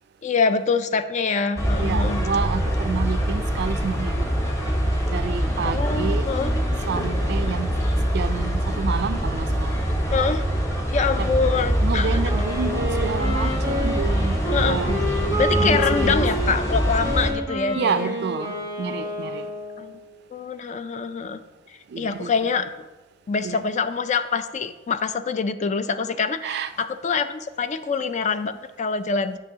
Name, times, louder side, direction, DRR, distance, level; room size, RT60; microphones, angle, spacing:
voice 1, 0.2-2.2 5.6-6.5 10.1-10.5 10.9-12.2 14.5-14.8 15.4-18.2 19.8-20.0 20.3-21.4 21.7-22.7 23.3-29.4, left 5 dB, 40° left, 0.3 m, -25 dB
sound 1, 1.6-17.3, equal, 15° left, 1.0 m, -24 dB
voice 2, 1.8-4.3 5.1-6.3 6.9-7.7 8.1-9.7 11.2-11.3 11.8-15.0 15.6-16.3 17.7-19.5 21.9-22.3 23.4-23.6 26.4-26.7, right 5 dB, 60° right, 0.4 m, -29 dB
Wind instrument woodwind instrument, 12.2-20.0, equal, 80° left, 2.6 m, -29 dB
9.0 x 6.1 x 2.8 m
head